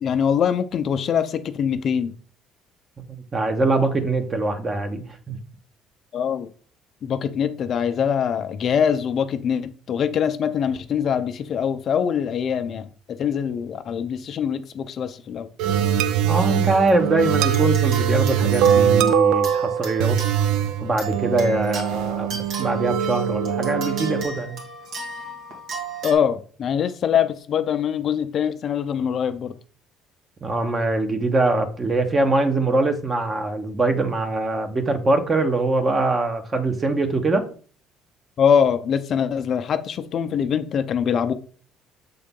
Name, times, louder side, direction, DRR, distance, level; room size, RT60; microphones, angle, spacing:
voice 1, 0.0-2.1 6.1-6.5 7.0-15.5 26.0-29.5 38.4-41.3, left 8 dB, 50° left, 0.5 m, -23 dB
voice 2, 3.3-5.4 16.2-20.2 20.8-24.6 30.4-37.5, right 2 dB, 30° right, 1.1 m, -23 dB
sound 1, 15.6-24.2, right 8 dB, 85° right, 0.4 m, -22 dB
sound 2, 16.3-26.1, right 6 dB, 70° right, 2.0 m, -35 dB
7.0 x 3.7 x 3.7 m
cardioid pair, 105°, 0 cm